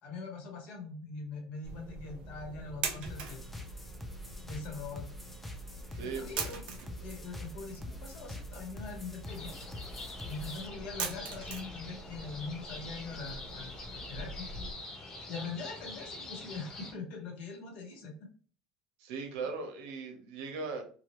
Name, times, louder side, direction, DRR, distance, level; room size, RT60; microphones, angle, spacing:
voice 1, 0.0-3.4 4.4-5.0 6.0-9.5 10.3-14.5 15.3-18.3, left 4 dB, 60° left, 1 dB, 1.2 m, -42 dB
sound 1, 1.6-14.7, right 4 dB, 50° right, 0.7 m, -43 dB
sound 2, 3.1-10.7, left 1 dB, 5° left, 0.4 m, -45 dB
voice 2, 5.9-6.3 19.0-20.8, right 4 dB, 80° right, 4 dB, 0.9 m, -38 dB
sound 3, 9.2-16.9, left 2 dB, 40° left, 1.1 m, -45 dB
3.0 x 2.3 x 3.0 m, 0.42 s
cardioid pair, 140°, 2 cm